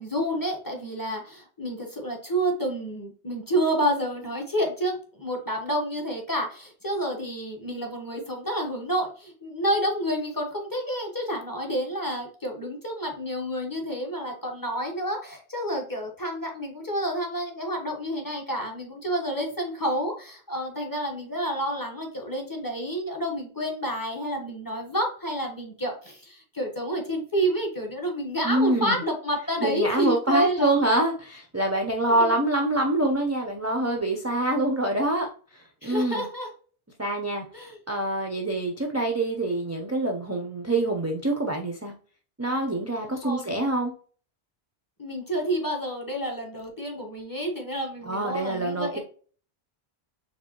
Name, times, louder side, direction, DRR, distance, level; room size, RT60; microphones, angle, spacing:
voice 1, 0.0-30.7 32.1-32.3 35.8-36.5 37.5-37.8 43.2-43.5 45.0-49.0, equal, 20° left, 1 dB, 1.0 m, -29 dB
voice 2, 28.4-29.0 29.6-35.3 35.5-36.2 37.0-37.5 37.9-41.9 42.4-43.9 48.0-49.0, right 2 dB, 20° right, 2 dB, 0.5 m, -25 dB
4.6 x 3.4 x 2.9 m, 0.42 s
omnidirectional pair, 1.1 m